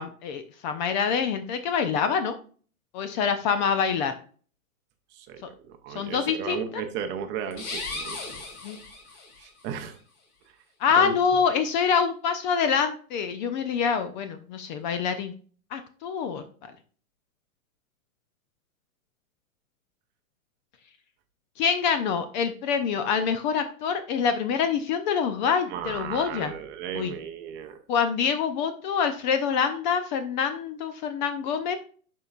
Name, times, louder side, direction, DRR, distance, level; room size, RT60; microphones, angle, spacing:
voice 1, 0.0-2.4 2.9-4.1 5.9-6.8 8.6-8.8 10.8-15.3 15.7-16.7 21.6-26.5 26.9-27.1 27.9-31.8, left 6 dB, 35° left, 9 dB, 0.5 m, -26 dB
voice 2, 5.1-8.4 9.4-10.0 11.0-11.2 25.7-27.8, right 8 dB, 25° right, 6 dB, 0.7 m, -35 dB
sound 1, 7.5-9.5, left 3 dB, 50° left, 2.5 m, -36 dB
11.0 x 4.6 x 2.4 m, 0.43 s
hypercardioid pair, 135°, 43 cm